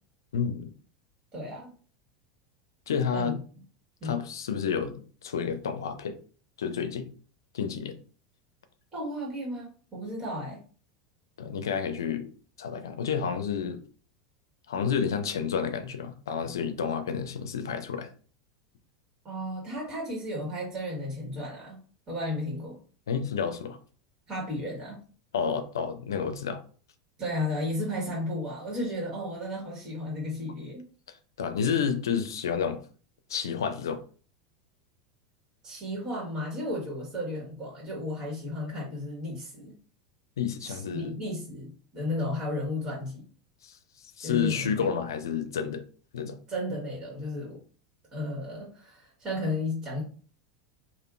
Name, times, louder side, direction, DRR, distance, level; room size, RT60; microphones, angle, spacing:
voice 1, 0.3-0.7 2.9-3.4 4.0-6.2 6.6-7.1 7.5-8.0 11.4-12.3 12.6-13.8 14.7-18.1 23.1-23.8 25.3-26.6 31.4-32.8 33.3-34.0 40.4-41.1 43.6-43.8 44.2-45.8 46.1-46.4, left 7 dB, 85° left, 0.5 m, -30 dB
voice 2, 1.3-1.7 3.1-3.4 4.0-4.2 8.9-10.6 19.2-21.8 22.1-22.8 24.3-25.0 27.2-30.8 35.6-39.7 40.6-43.3 44.2-44.9 46.5-47.6 48.1-50.0, left 1 dB, 35° right, 1.6 m, -34 dB
3.5 x 2.5 x 2.5 m
hypercardioid pair, 95°, 2 cm